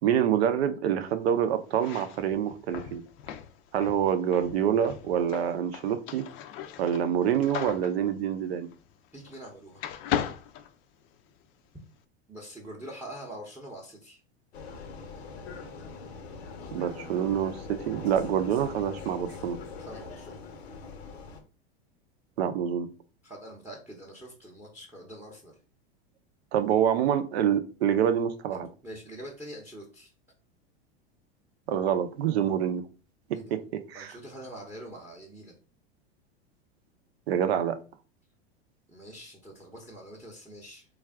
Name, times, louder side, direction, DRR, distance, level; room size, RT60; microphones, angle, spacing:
voice 1, 0.0-3.0 3.7-6.3 6.8-8.7 16.7-19.6 22.4-22.9 26.5-28.7 31.7-32.8 33.3-34.1 37.3-37.8, right 9 dB, 75° right, 0.6 m, -26 dB
sound 1, 1.7-9.5 9.8-11.4, left 10 dB, 45° left, 0.4 m, -38 dB
voice 2, 9.1-9.8 12.3-14.2 19.8-20.4 23.2-25.5 28.8-30.1 33.3-33.5 33.9-35.6 38.9-40.9, right 1 dB, 5° right, 0.7 m, -44 dB
Vehicle, 14.5-21.4, left 4 dB, 85° left, 0.8 m, -42 dB
3.4 x 2.4 x 3.4 m
hypercardioid pair, 100°, 31 cm